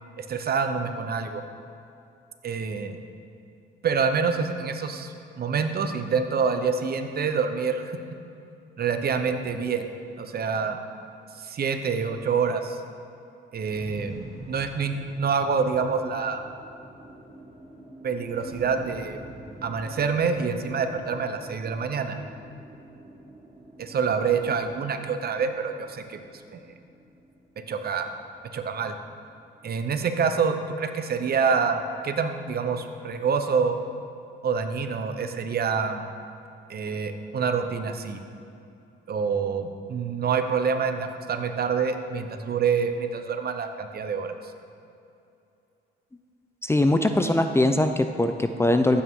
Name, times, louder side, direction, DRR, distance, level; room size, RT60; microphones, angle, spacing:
voice 1, 0.2-1.4 2.4-3.0 3.8-7.8 8.8-9.8 10.2-10.8 11.4-12.8 13.5-16.4 18.0-19.2 19.6-22.2 23.8-26.2 26.5-26.6 27.6-28.1 28.5-28.9 29.6-33.8 34.4-36.0 36.7-38.2 39.1-44.3, right 5 dB, 50° right, 8 dB, 0.9 m, -26 dB
sound 1, 13.7-30.1, right 1 dB, 30° right, 2.7 m, -47 dB
voice 2, 46.6-49.0, left 1 dB, 15° left, 7 dB, 0.6 m, -21 dB
15.0 x 8.7 x 3.8 m, 2.6 s
cardioid pair, 90°, 20 cm